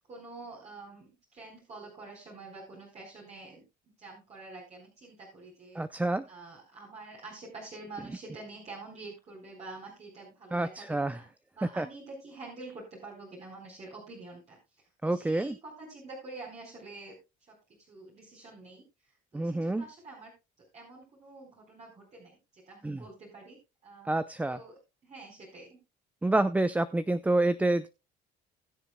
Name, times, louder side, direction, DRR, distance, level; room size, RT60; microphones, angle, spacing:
voice 1, 0.1-3.6 4.0-5.8 6.3-11.3 11.5-17.6 17.9-20.3 20.6-25.8, right 3 dB, 40° right, -3 dB, 4.2 m, -47 dB
voice 2, 5.7-6.3 10.5-11.2 11.8-11.9 15.0-15.6 19.3-19.9 22.8-23.0 24.1-24.6 26.2-27.9, right 2 dB, 10° right, 13 dB, 0.5 m, -28 dB
20.5 x 7.1 x 2.2 m, 0.26 s
cardioid pair, 110°, 17 cm